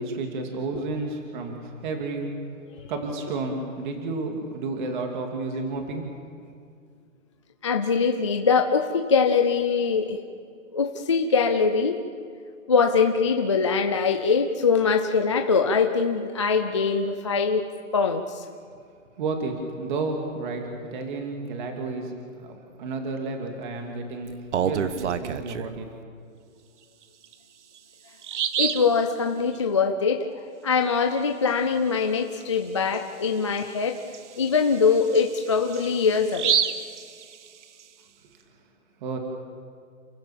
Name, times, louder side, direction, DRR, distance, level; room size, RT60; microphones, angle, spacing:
voice 1, 0.0-2.3 2.9-6.1 19.2-22.1 22.4-24.3 24.6-25.9 38.2-38.4 39.0-39.2, right 3 dB, 35° right, 3 dB, 2.6 m, -31 dB
voice 2, 7.6-10.2 10.7-12.0 12.7-17.6 17.9-18.4 28.6-30.3 30.6-34.0 34.4-36.6, left 5 dB, 25° left, 4 dB, 0.4 m, -22 dB
Bird vocalization bird call bird song, 24.3-25.8 27.2-27.3 27.8-27.9 28.2-28.9 32.4-32.5 32.9-33.0 33.6-37.8, right 8 dB, 60° right, 1.2 m, -29 dB
29.0 x 15.5 x 7.3 m, 2.3 s
hypercardioid pair, 165°, 41 cm